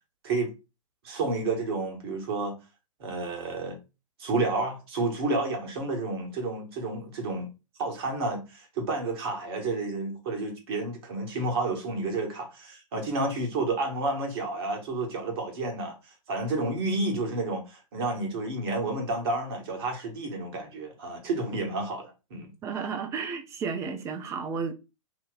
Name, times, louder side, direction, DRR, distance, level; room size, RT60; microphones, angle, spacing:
voice 1, 1.0-2.6 3.0-3.8 4.2-7.5 7.8-22.5, right 2 dB, 45° right, 1.2 m, -30 dB
voice 2, 22.6-24.7, right 5 dB, 15° right, 0.4 m, -32 dB
2.8 x 2.1 x 4.0 m
figure-of-eight pair, 110°, 17 cm